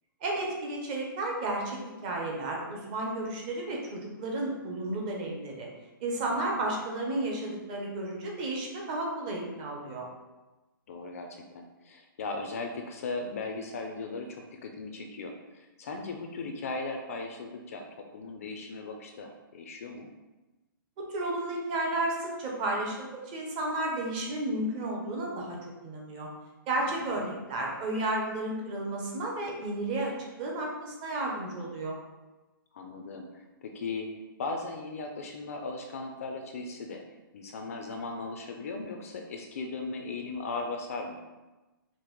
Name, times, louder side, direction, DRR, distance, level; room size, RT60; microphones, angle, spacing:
voice 1, 0.2-5.7 6.0-10.1 21.0-25.6 25.8-26.3 26.7-30.1 30.4-32.0, right 2 dB, 20° right, -1 dB, 0.5 m, -32 dB
voice 2, 6.3-6.6 10.9-20.1 26.8-27.2 32.7-37.0 37.3-41.2, left 3 dB, 40° left, 4 dB, 0.4 m, -38 dB
5.0 x 2.0 x 3.0 m, 1.1 s
hypercardioid pair, 170°, 12 cm